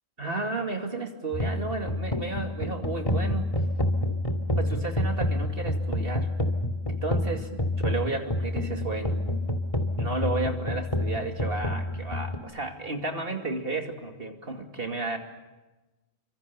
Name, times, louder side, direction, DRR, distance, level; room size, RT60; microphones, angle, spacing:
voice 1, 0.2-3.5 4.6-6.3 6.9-9.2 10.0-15.2, right 3 dB, 45° right, 4 dB, 2.7 m, -33 dB
sound 1, 1.3-12.4, left 1 dB, 25° left, 2.2 m, -28 dB
29.0 x 25.5 x 6.9 m, 1.1 s
omnidirectional pair, 1.4 m